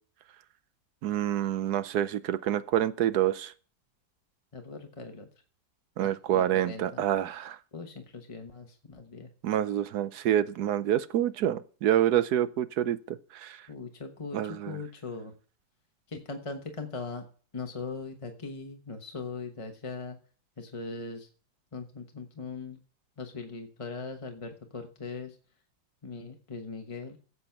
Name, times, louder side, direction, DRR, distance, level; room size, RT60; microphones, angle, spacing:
voice 1, 1.0-3.5 6.0-7.6 9.4-13.6 14.3-14.8, right 11 dB, 65° right, 1.1 m, -27 dB
voice 2, 4.5-5.3 6.0-7.0 7.7-9.3 13.7-15.3 16.1-17.2 17.5-20.2 20.6-21.3 21.7-22.8 23.2-25.3 26.0-27.2, left 4 dB, 25° left, 0.8 m, -40 dB
14.0 x 8.1 x 5.8 m
omnidirectional pair, 2.0 m